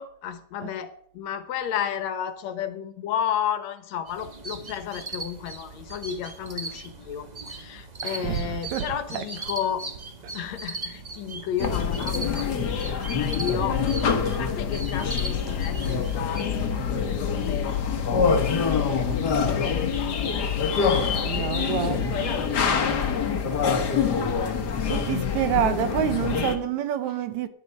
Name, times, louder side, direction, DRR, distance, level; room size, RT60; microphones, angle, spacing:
voice 1, 0.0-9.9 10.3-13.9 14.4-17.8 18.9-20.7 21.6-22.9 25.6-25.7 27.0-27.2, left 9 dB, 70° left, 2.1 m, -33 dB
sound 1, 4.1-16.4, right 3 dB, 45° right, 0.5 m, -38 dB
voice 2, 8.0-9.5 19.1-19.5 21.2-22.7 24.9-27.5, right 10 dB, 75° right, 2.2 m, -29 dB
sound 2, 11.6-26.6, left 6 dB, 45° left, 1.4 m, -25 dB
10.5 x 10.0 x 5.3 m
omnidirectional pair, 3.4 m